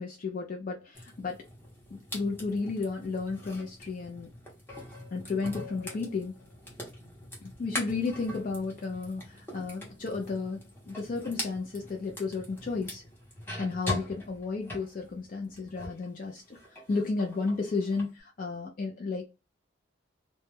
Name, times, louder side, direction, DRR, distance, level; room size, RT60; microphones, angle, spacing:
voice 1, 0.0-1.4 1.9-4.3 5.1-6.3 7.4-13.0 13.6-19.3, left 4 dB, 45° left, 0.4 m, -33 dB
sound 1, 0.9-16.1 16.4-18.1, left 1 dB, 10° left, 0.7 m, -42 dB
2.2 x 2.1 x 3.0 m
head